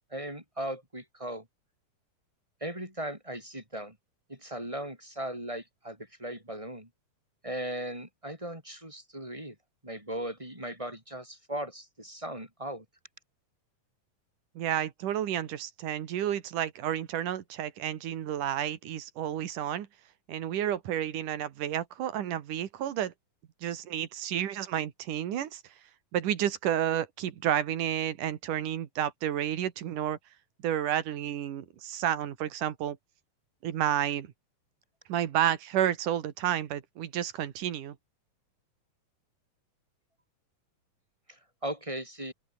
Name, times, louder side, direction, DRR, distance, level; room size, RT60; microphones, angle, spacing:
voice 1, 0.1-1.5 2.6-4.0 4.3-6.9 7.4-9.6 9.8-12.9 41.3-42.3, right 1 dB, 10° right, 5.4 m, -38 dB
voice 2, 14.6-19.9 20.3-23.1 23.6-25.6 26.1-30.2 30.6-33.0 33.6-34.3 35.1-38.0, right 11 dB, 85° right, 3.2 m, -31 dB
open air
omnidirectional pair, 3.6 m